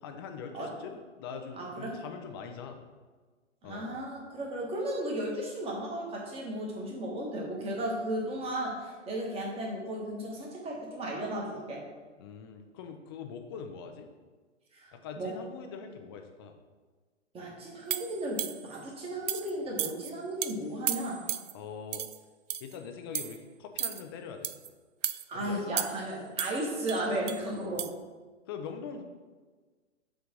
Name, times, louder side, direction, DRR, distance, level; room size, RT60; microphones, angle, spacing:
voice 1, 0.0-2.8 3.6-3.9 12.2-14.1 14.9-16.6 21.5-22.0 22.6-24.5 25.3-25.8 27.7-27.8 28.5-29.0, left 6 dB, 20° left, 5 dB, 0.4 m, -43 dB
voice 2, 1.6-1.9 3.6-11.8 14.7-15.3 17.3-21.2 25.3-27.9, right 1 dB, 15° right, -3 dB, 1.4 m, -35 dB
sound 1, 17.9-18.7 19.3-19.5 19.8-20.1 20.4-20.5 20.9-21.5 21.9-22.2 22.5-22.8 23.1-23.4 23.8-24.0 24.4-24.7 25.0-25.2 25.8-26.1 26.4-27.4 27.8-27.9, right 10 dB, 75° right, 0.5 m, -34 dB
6.7 x 3.4 x 5.3 m, 1.4 s
figure-of-eight pair, 125°, 37 cm